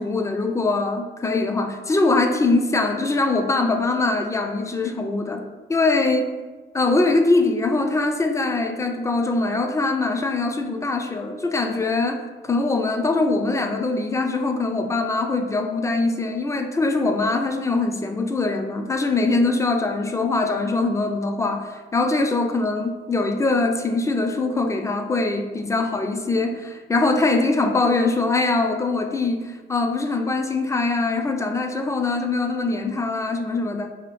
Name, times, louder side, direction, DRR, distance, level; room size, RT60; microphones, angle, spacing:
voice 1, 0.0-6.3 6.7-33.9, left 3 dB, 15° left, 6 dB, 0.3 m, -22 dB
4.1 x 2.3 x 3.1 m, 1.3 s
cardioid pair, 90°, 20 cm